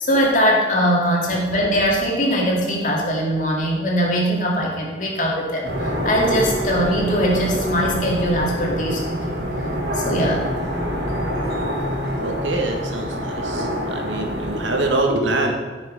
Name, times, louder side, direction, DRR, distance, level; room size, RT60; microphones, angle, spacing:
voice 1, 0.0-9.5 9.9-10.5, equal, 45° left, -2 dB, 2.4 m, -21 dB
sound 1, 5.6-14.9, equal, 65° right, 3.0 m, -26 dB
voice 2, 12.2-15.5, right 2 dB, 90° right, 2 dB, 1.8 m, -24 dB
13.5 x 6.4 x 5.3 m, 1.4 s
head